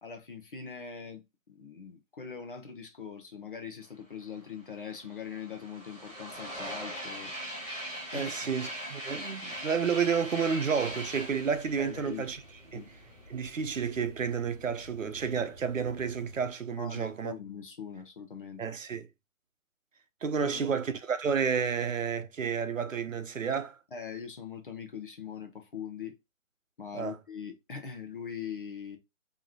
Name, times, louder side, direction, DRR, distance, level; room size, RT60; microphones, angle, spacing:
voice 1, 0.0-7.3 8.1-8.5 11.8-12.2 12.7-12.9 16.7-18.6 20.3-20.8 23.9-26.2 26.8-29.0, left 7 dB, 40° left, 0.9 m, -42 dB
sound 1, 4.4-4.5 4.7-13.3, equal, 10° left, 0.8 m, -41 dB
voice 2, 8.1-12.4 12.7-12.9 13.3-17.3 18.6-19.1 20.2-23.8 26.9-27.2, right 6 dB, 70° right, 0.8 m, -31 dB
sound 2, 10.7-16.5, equal, 30° right, 1.2 m, -52 dB
4.7 x 3.0 x 2.9 m
figure-of-eight pair, 155°, 40 cm